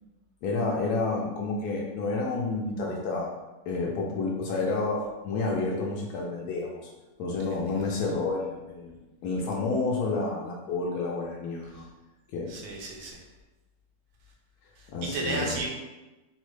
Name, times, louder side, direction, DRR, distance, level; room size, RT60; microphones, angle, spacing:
voice 1, 0.4-3.3 3.7-6.8 7.2-9.0 9.2-11.9 12.3-12.5 14.9-15.6, left 3 dB, 70° left, -2 dB, 1.0 m, -30 dB
voice 2, 12.5-13.2 14.8-15.7, right 2 dB, 75° right, 0 dB, 1.2 m, -33 dB
3.7 x 2.0 x 3.1 m, 1.1 s
omnidirectional pair, 1.9 m